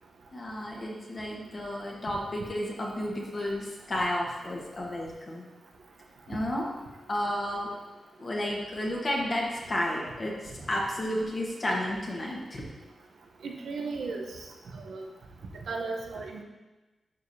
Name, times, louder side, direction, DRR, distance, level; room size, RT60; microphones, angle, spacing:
voice 1, 0.3-5.4 6.3-6.7 7.1-7.7 8.2-12.6, left 1 dB, 40° left, -3 dB, 1.4 m, -32 dB
voice 2, 13.4-14.2 14.7-15.1 15.7-16.4, right 3 dB, 80° right, 1 dB, 0.9 m, -35 dB
11.5 x 4.9 x 2.8 m, 1.2 s
wide cardioid pair, 110°, 0 cm